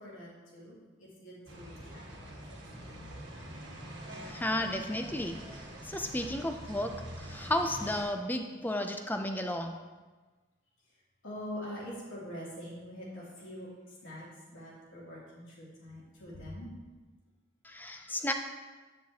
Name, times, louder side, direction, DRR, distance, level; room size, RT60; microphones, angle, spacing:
voice 1, 0.0-3.2 4.1-4.3 11.2-13.7 14.0-16.7, equal, 75° left, -6 dB, 2.8 m, -45 dB
sound 1, 1.5-8.0, right 1 dB, 60° right, 1.4 m, -45 dB
voice 2, 4.3-9.8 17.6-18.3, left 1 dB, 10° left, 5 dB, 0.4 m, -33 dB
9.8 x 7.4 x 2.8 m, 1.3 s
head